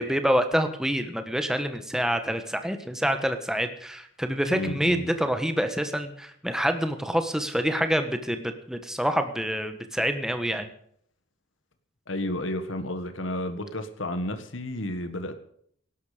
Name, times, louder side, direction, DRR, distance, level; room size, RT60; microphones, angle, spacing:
voice 1, 0.0-10.7, equal, 5° right, 8 dB, 1.4 m, -27 dB
voice 2, 4.5-5.1 12.1-15.4, left 1 dB, 75° left, 9 dB, 1.7 m, -31 dB
17.5 x 12.0 x 5.1 m, 0.66 s
head